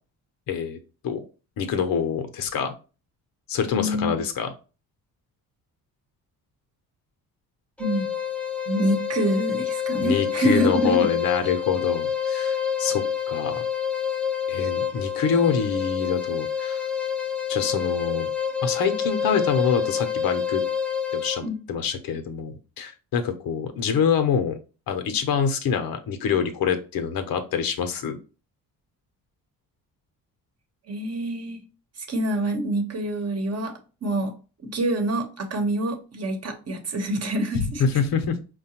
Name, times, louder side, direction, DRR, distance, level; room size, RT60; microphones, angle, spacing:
voice 1, 0.5-0.8 1.0-1.2 1.6-2.7 3.5-4.5 10.0-13.6 14.5-16.8 17.5-18.3 18.6-20.6 21.1-24.6 24.9-28.2 37.8-38.4, left 7 dB, 65° left, 0.8 m, -25 dB
voice 2, 3.7-4.2 7.8-8.1 8.7-11.1 21.4-21.6 30.9-31.6 32.1-33.7 34.0-34.3 34.6-37.8, right 1 dB, 40° right, 1.0 m, -26 dB
sound 1, 7.8-21.5, left 8 dB, 5° left, 0.5 m, -27 dB
4.7 x 2.2 x 2.9 m
supercardioid pair, 70°, 37 cm